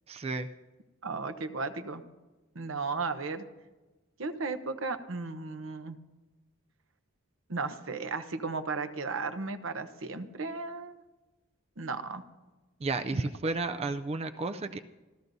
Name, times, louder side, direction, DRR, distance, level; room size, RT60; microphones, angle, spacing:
voice 1, 0.1-0.5 12.8-14.8, right 3 dB, 30° right, 10 dB, 0.4 m, -32 dB
voice 2, 1.0-2.0 2.5-3.4 4.2-6.0 7.5-11.0 11.8-12.2 13.1-13.3, right 4 dB, 60° right, 10 dB, 0.9 m, -35 dB
28.0 x 13.5 x 2.7 m, 1.2 s
head